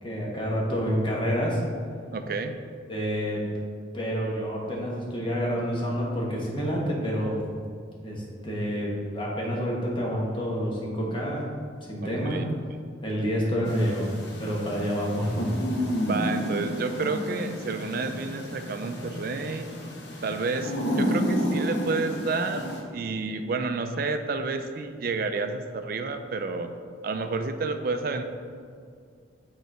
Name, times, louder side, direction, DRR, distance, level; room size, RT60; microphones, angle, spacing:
voice 1, 0.0-1.6 2.9-3.4 3.9-7.4 8.0-11.5 11.9-12.4 13.0-14.1 14.4-15.5, equal, 25° left, -3 dB, 1.2 m, -28 dB
voice 2, 2.1-2.6 12.0-12.5 16.0-19.7 20.2-26.7 27.0-28.2, right 3 dB, 50° right, 8 dB, 0.4 m, -30 dB
sound 1, 13.7-22.8, equal, 65° left, 0.8 m, -31 dB
6.4 x 4.0 x 4.8 m, 2.2 s
head